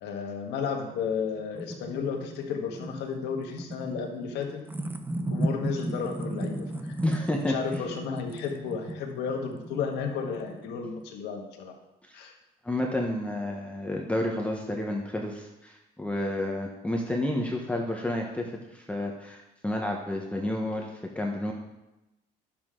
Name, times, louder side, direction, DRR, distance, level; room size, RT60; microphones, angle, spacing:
voice 1, 0.0-4.6 5.2-6.9 7.4-11.7 12.1-12.3, left 6 dB, 85° left, 2 dB, 1.6 m, -33 dB
sound 1, 1.0-11.0, right 1 dB, 10° right, 0.6 m, -36 dB
voice 2, 7.0-7.5 12.1-12.2 12.6-21.5, left 1 dB, 5° left, 0 dB, 1.1 m, -30 dB
10.5 x 7.4 x 3.8 m, 0.96 s
cardioid pair, 110°, 17 cm